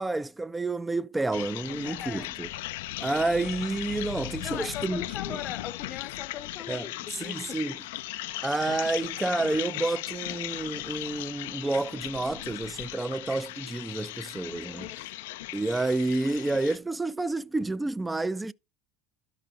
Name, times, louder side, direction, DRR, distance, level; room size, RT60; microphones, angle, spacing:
voice 1, 0.0-2.5 3.0-5.0 5.3-5.4 6.7-7.8 8.4-14.9 15.5-18.5, right 2 dB, 10° right, 0.4 m, -29 dB
sound 1, 1.3-16.8, left 16 dB, 80° left, 0.3 m, -37 dB
voice 2, 1.7-2.3 4.4-7.8 14.6-15.1, left 10 dB, 45° left, 0.6 m, -40 dB
12.0 x 4.8 x 3.6 m
supercardioid pair, 100°, 0 cm